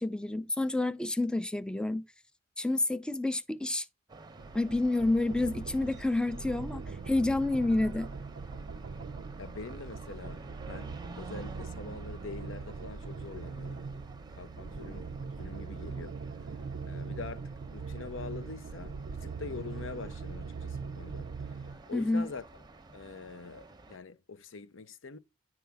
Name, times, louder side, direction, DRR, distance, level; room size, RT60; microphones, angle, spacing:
voice 1, 0.0-2.0 2.6-3.9 4.5-8.1 21.9-22.3, left 2 dB, 5° left, 0.4 m, -29 dB
sound 1, 4.1-24.0, right 3 dB, 20° right, 0.8 m, -52 dB
sound 2, 4.4-21.8, right 4 dB, 60° right, 0.5 m, -41 dB
voice 2, 9.4-13.8 14.3-15.1 15.4-16.2 16.9-21.6 21.9-22.5 22.9-25.2, left 4 dB, 75° left, 0.8 m, -44 dB
10.5 x 4.7 x 3.5 m
head